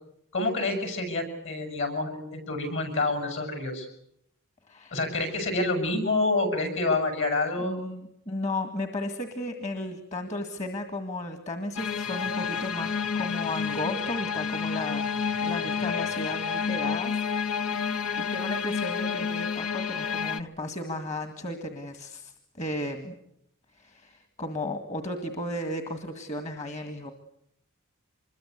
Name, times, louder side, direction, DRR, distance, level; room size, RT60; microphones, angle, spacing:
voice 1, 0.3-3.9 4.9-7.8, left 2 dB, 60° left, 7 dB, 7.9 m, -28 dB
voice 2, 4.7-5.0 7.6-17.8 18.2-23.1 23.7-27.1, left 1 dB, 30° left, 8 dB, 1.9 m, -34 dB
sound 1, 11.8-20.4, left 6 dB, 80° left, 1.0 m, -30 dB
25.5 x 22.5 x 8.2 m, 0.76 s
head